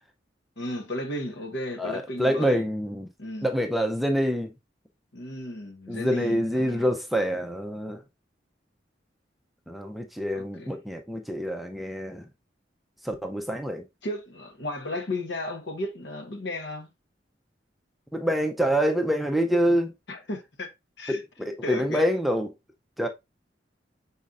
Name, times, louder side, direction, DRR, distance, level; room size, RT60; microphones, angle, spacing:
voice 1, 0.6-2.6 3.2-3.5 5.1-6.9 10.3-10.7 14.0-16.9 20.1-20.7 21.0-21.2 21.6-22.0, left 1 dB, 70° left, 1.0 m, -34 dB
voice 2, 1.8-3.1 3.4-4.6 5.9-8.0 9.7-12.3 13.0-13.9 18.1-19.9 21.1-22.5 23.0-23.1, equal, ahead, 0.4 m, -26 dB
5.3 x 4.1 x 2.4 m
head